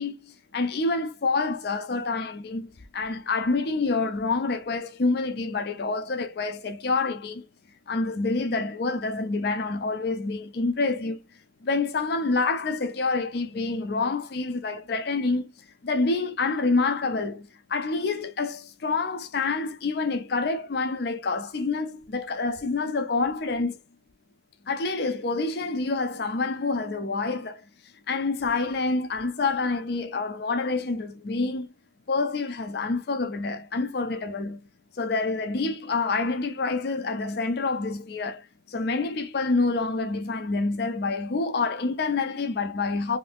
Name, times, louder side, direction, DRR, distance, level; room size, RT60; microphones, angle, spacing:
voice 1, 0.0-7.5 7.9-11.2 11.6-15.5 15.8-23.8 24.7-27.6 28.1-31.7 32.1-34.6 35.0-38.4 38.7-43.2, left 3 dB, 55° left, 0.4 m, -27 dB
2.7 x 2.5 x 3.4 m
head